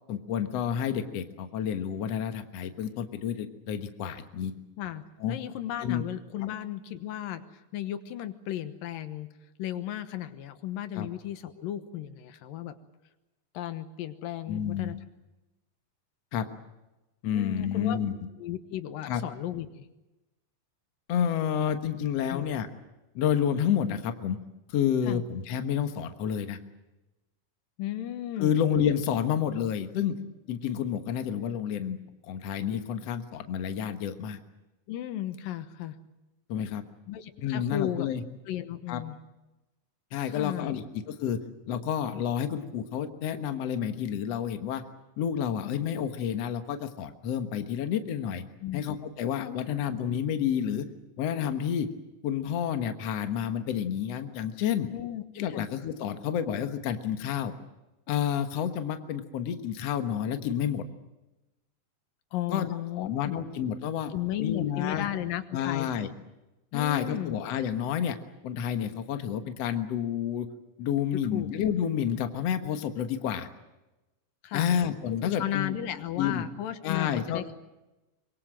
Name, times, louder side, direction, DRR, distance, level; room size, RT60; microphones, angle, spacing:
voice 1, 0.1-4.5 5.2-5.4 5.8-6.0 11.0-11.1 14.5-15.0 16.3-16.5 17.2-18.1 19.1-19.2 21.1-22.7 23.2-24.4 24.7-26.6 28.4-30.1 30.5-32.0 32.2-34.4 36.5-36.8 37.4-38.2 38.9-39.0 40.1-41.4 41.7-44.8 45.2-48.4 48.7-50.9 51.2-51.9 52.2-54.9 55.4-57.5 58.1-60.8 62.5-62.7 63.0-64.1 64.4-65.1 65.5-66.1 66.7-68.2 68.4-70.5 70.8-73.5 74.5-75.7 76.2-76.4 76.8-77.5, left 9 dB, 55° left, 8 dB, 2.2 m, -29 dB
voice 2, 5.3-7.4 7.7-9.3 9.6-12.8 13.5-15.0 17.3-18.0 18.4-19.9 22.3-22.5 25.1-25.2 27.8-28.6 34.9-36.0 37.1-38.1 38.5-39.2 40.3-40.8 48.6-48.8 49.7-49.8 54.9-55.2 55.5-55.7 62.3-63.4 64.1-65.9 66.7-67.4 71.3-71.5 74.4-74.7 75.4-77.6, left 12 dB, 85° left, 10 dB, 2.9 m, -34 dB
24.0 x 23.0 x 7.6 m, 1.0 s
omnidirectional pair, 3.9 m